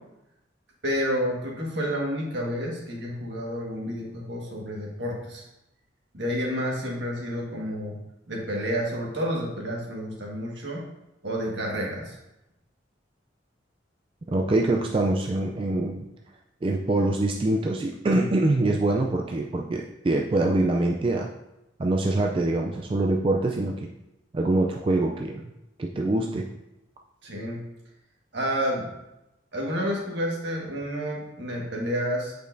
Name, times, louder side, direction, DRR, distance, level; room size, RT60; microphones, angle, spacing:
voice 1, 0.8-5.4 6.1-8.0 8.3-10.8 11.2-12.2 18.1-18.3 27.2-27.6 28.3-28.9 29.5-32.3, equal, 65° right, -2 dB, 1.6 m, -30 dB
voice 2, 14.3-16.0 16.6-21.3 21.8-23.9 24.3-25.5 25.8-26.5, right 2 dB, 30° right, 1 dB, 0.3 m, -24 dB
8.6 x 5.1 x 2.6 m, 0.92 s
head